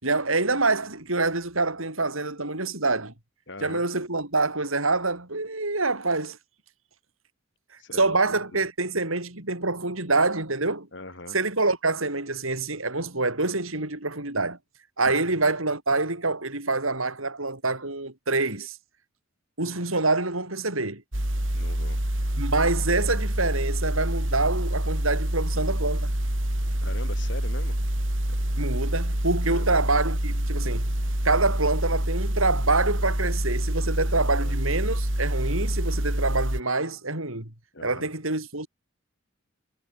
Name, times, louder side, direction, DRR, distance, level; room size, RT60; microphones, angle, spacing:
voice 1, 0.0-3.1 3.6-6.4 8.0-10.9 11.3-14.6 15.0-18.8 19.6-21.0 22.4-26.1 28.6-30.9 31.2-37.5 37.8-38.7, right 3 dB, 80° right, 6.2 m, -26 dB
voice 2, 3.5-3.9 7.8-8.7 10.9-11.4 15.0-15.2 21.5-22.0 26.8-27.8 28.3-28.4 29.5-29.8 34.2-34.6 37.7-38.1, left 2 dB, 60° left, 7.6 m, -41 dB
sound 1, 21.1-36.6, right 1 dB, 65° right, 3.7 m, -26 dB
head